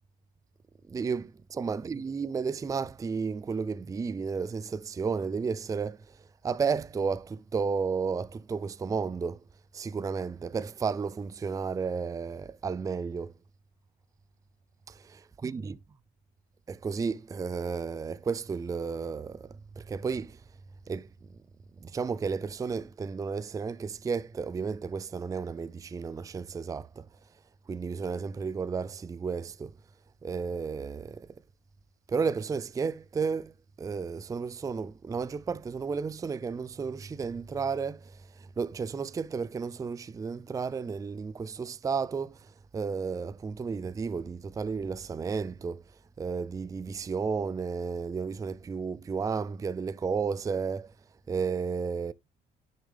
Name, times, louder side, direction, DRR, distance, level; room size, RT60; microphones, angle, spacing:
voice 1, 0.9-6.2 6.4-9.4 9.7-13.3 15.4-15.7 16.7-20.4 20.9-21.1 21.8-27.1 27.7-29.7 30.2-31.3 32.1-33.5 33.8-38.1 38.4-42.4 42.7-45.8 46.2-50.9 51.3-52.1, right 5 dB, 20° right, 0.4 m, -32 dB
10.0 x 6.7 x 3.4 m
cardioid pair, 110°, 17 cm